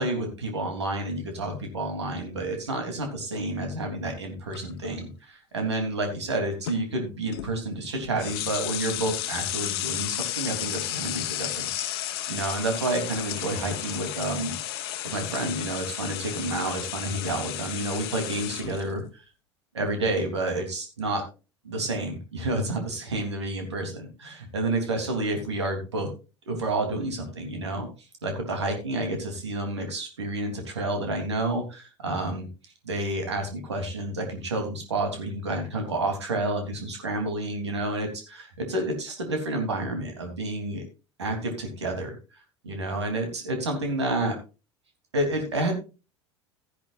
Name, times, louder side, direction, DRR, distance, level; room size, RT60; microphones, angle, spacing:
voice 1, 0.0-11.9 12.3-14.6 15.0-19.2 19.7-21.2 21.6-26.1 26.5-27.9 28.2-32.5 32.8-40.8 41.2-42.2 42.6-44.4 45.1-45.7, right 2 dB, 75° right, 4 dB, 3.3 m, -29 dB
sound 1, 4.5-4.9 6.6-6.8 7.3-7.6 7.9-18.8, left 13 dB, 60° left, 1.1 m, -33 dB
14.5 x 10.5 x 2.5 m, 0.31 s
figure-of-eight pair, 75°, 14 cm